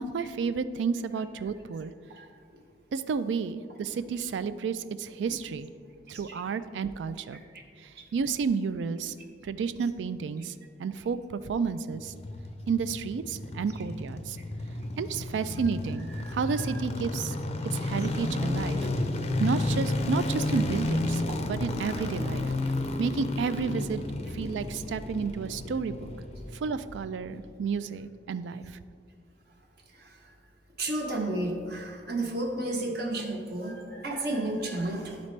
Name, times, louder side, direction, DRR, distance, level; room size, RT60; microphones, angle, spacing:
voice 1, 0.0-1.9 2.9-5.7 6.1-7.4 7.8-9.2 9.4-10.5 10.8-12.1 12.7-14.4 15.0-17.4 17.6-18.9 19.4-21.2 21.5-22.5 23.0-24.0 24.3-26.1 26.5-28.8, right 5 dB, 90° right, 13 dB, 0.3 m, -31 dB
voice 2, 1.1-1.8 2.2-2.3 4.1-4.2 5.3-5.4 6.1-6.4 9.8-9.9 11.0-11.1 13.7-13.9 15.5-16.8 19.4-19.5 20.4-20.5 29.9-30.3 30.8-35.2, right 1 dB, 60° right, 0 dB, 1.0 m, -34 dB
sound 1, 11.9-27.2 27.4-27.5, left 2 dB, 35° left, 0.4 m, -32 dB
11.5 x 4.1 x 3.2 m, 2.2 s
head